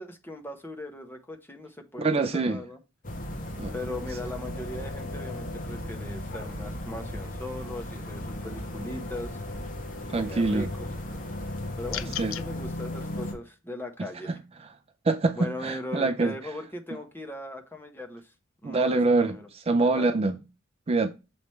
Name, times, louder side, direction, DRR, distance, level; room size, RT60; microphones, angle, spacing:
voice 1, 0.0-2.8 3.7-9.4 10.2-10.7 11.8-14.4 15.3-18.3 18.6-19.5 19.8-20.1, left 1 dB, 10° left, 0.9 m, -39 dB
voice 2, 2.0-2.6 3.6-3.7 10.1-10.7 12.2-12.4 14.0-14.4 15.0-16.3 18.6-20.4 20.9-21.1, right 3 dB, 30° right, 0.4 m, -25 dB
sound 1, 3.0-13.3, left 1 dB, 40° left, 1.2 m, -36 dB
sound 2, 11.9-12.5, left 12 dB, 90° left, 0.5 m, -34 dB
6.9 x 3.2 x 4.3 m
head